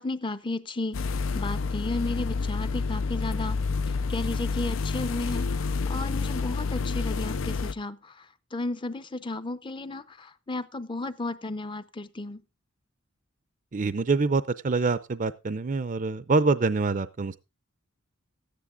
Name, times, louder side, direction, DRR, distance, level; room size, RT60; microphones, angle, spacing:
voice 1, 0.0-3.6 3.9-12.4, left 2 dB, 25° left, 0.6 m, -34 dB
sound 1, 0.9-7.7, left 4 dB, 75° left, 0.5 m, -29 dB
voice 2, 13.7-17.4, right 4 dB, 40° right, 0.5 m, -25 dB
13.5 x 9.9 x 3.7 m
head